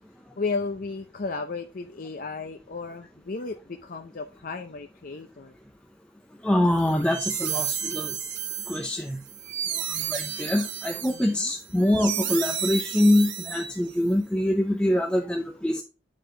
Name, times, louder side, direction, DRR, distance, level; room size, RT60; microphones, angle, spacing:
voice 1, 0.4-5.5 11.1-11.5, left 4 dB, 50° left, 0.6 m, -34 dB
voice 2, 6.4-8.1 8.7-9.2 10.1-15.8, left 1 dB, 5° left, 0.6 m, -24 dB
sound 1, 6.8-14.1, right 8 dB, 80° right, 1.1 m, -32 dB
9.0 x 4.8 x 3.8 m
head